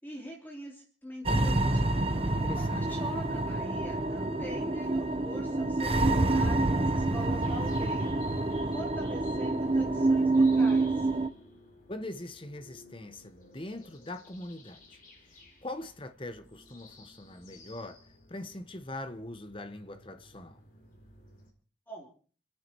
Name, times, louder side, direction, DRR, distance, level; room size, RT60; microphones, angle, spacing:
voice 1, 0.0-2.0 2.6-8.1 8.7-11.1 21.9-22.1, right 1 dB, 10° left, 3.5 m, -44 dB
sound 1, 1.3-11.3, right 2 dB, 30° right, 1.0 m, -27 dB
voice 2, 2.4-2.9 11.9-15.0 15.3-18.0 18.3-20.6, left 1 dB, 25° left, 1.1 m, -42 dB
sound 2, 7.4-21.5, left 2 dB, 45° left, 4.5 m, -55 dB
29.5 x 9.8 x 4.7 m
head